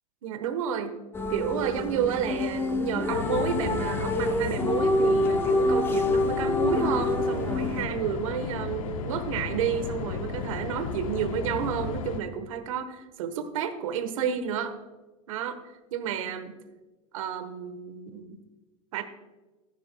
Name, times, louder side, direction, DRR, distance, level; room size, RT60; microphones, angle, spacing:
voice 1, 0.2-1.0 1.3-14.8 15.3-15.6 15.9-16.5 17.1-18.4 18.9-19.0, right 8 dB, 80° right, 9 dB, 1.2 m, -31 dB
sound 1, 1.1-7.9, left 2 dB, 15° left, 0.9 m, -26 dB
sound 2, 3.1-12.2, left 5 dB, 85° left, 1.1 m, -34 dB
16.0 x 10.5 x 2.3 m, 1.2 s
supercardioid pair, 125°, 17 cm